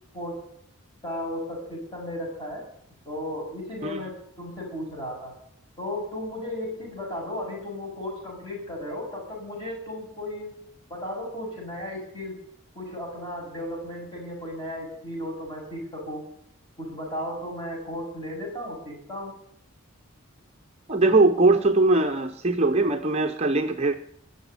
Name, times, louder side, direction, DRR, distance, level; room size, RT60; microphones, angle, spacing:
voice 1, 1.0-2.6 3.1-5.3 5.8-10.5 10.9-12.4 12.8-16.2 16.8-19.4, left 1 dB, 20° left, -3 dB, 7.2 m, -35 dB
voice 2, 20.9-23.9, right 2 dB, 30° right, 6 dB, 0.7 m, -21 dB
20.0 x 7.1 x 9.6 m, 0.72 s
head